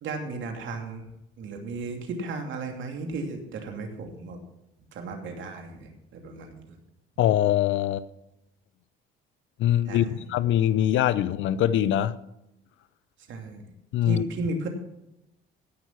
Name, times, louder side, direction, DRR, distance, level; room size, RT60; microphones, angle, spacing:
voice 1, 0.0-1.1 1.4-4.4 4.9-6.8 9.8-10.3 13.3-13.6 14.0-14.7, right 3 dB, 70° right, 4 dB, 2.8 m, -35 dB
voice 2, 7.2-8.1 9.6-10.0 10.3-12.2 13.9-14.2, left 11 dB, 70° left, 17 dB, 0.7 m, -23 dB
17.0 x 6.3 x 6.0 m, 0.88 s
supercardioid pair, 80°, 21 cm